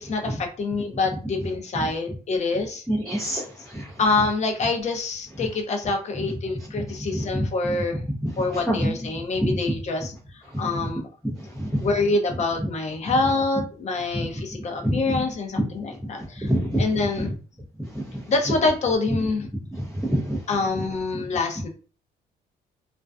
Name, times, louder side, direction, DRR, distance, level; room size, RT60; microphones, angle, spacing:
voice 1, 0.0-2.8 4.0-8.0 8.4-10.1 10.6-11.0 11.8-16.5 16.8-17.3 18.3-19.5 20.5-21.7, left 3 dB, 40° left, 3 dB, 0.7 m, -26 dB
voice 2, 2.9-3.4 3.7-3.9 8.7-8.9 9.4-9.6 11.6-11.7 14.8-15.2 16.4-16.8 19.7-20.4, equal, ahead, -5 dB, 0.6 m, -25 dB
2.5 x 2.2 x 2.3 m, 0.38 s
cardioid pair, 100°, 17 cm